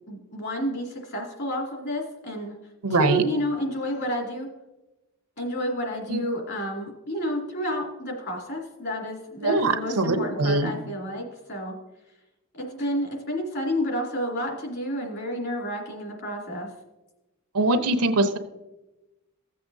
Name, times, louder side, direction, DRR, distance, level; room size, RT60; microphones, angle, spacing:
voice 1, 0.1-2.5 3.0-4.5 5.4-11.8 12.5-16.7, equal, 50° left, -1 dB, 2.5 m, -30 dB
voice 2, 2.8-3.2 6.1-6.2 9.4-10.7 17.5-18.4, right 2 dB, 85° right, 8 dB, 0.9 m, -22 dB
15.5 x 7.7 x 2.7 m, 1.0 s
head